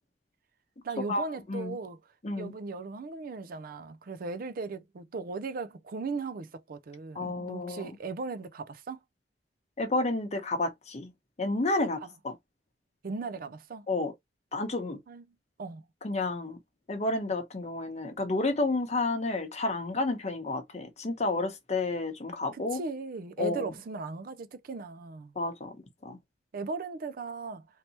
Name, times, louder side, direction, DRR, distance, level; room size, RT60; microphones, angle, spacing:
voice 1, 0.8-2.0 2.4-9.0 12.0-12.1 13.0-13.9 15.1-15.2 15.6-15.8 22.5-25.3 26.5-27.7, right 4 dB, 55° right, 0.4 m, -37 dB
voice 2, 7.1-7.9 9.8-11.1 11.4-12.3 13.9-14.1 14.5-15.0 16.0-16.6 16.9-22.8 23.4-23.7 25.4-25.8 26.0-26.2, left 2 dB, 40° left, 0.9 m, -30 dB
3.2 x 2.8 x 2.9 m
head